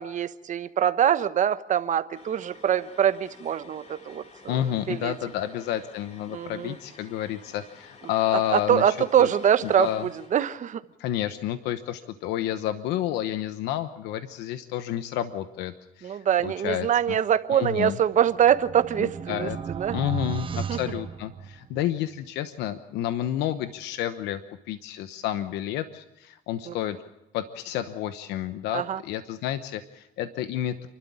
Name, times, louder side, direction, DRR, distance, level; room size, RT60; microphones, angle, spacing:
voice 1, 0.0-5.1 6.3-6.8 8.3-10.8 16.0-20.0 20.7-20.8 26.7-26.8 28.7-29.0, right 9 dB, 45° right, 12 dB, 1.1 m, -24 dB
sound 1, 2.1-10.4, left 4 dB, 40° left, 3.1 m, -52 dB
voice 2, 4.5-8.9 9.2-9.3 9.8-10.1 11.0-16.9 17.5-17.9 19.0-19.6 19.9-27.0 27.3-30.9, left 12 dB, 90° left, 11 dB, 1.0 m, -30 dB
sound 2, 17.9-21.9, right 7 dB, 30° right, 0.7 m, -35 dB
29.0 x 12.5 x 8.6 m, 0.92 s
cardioid pair, 110°, 17 cm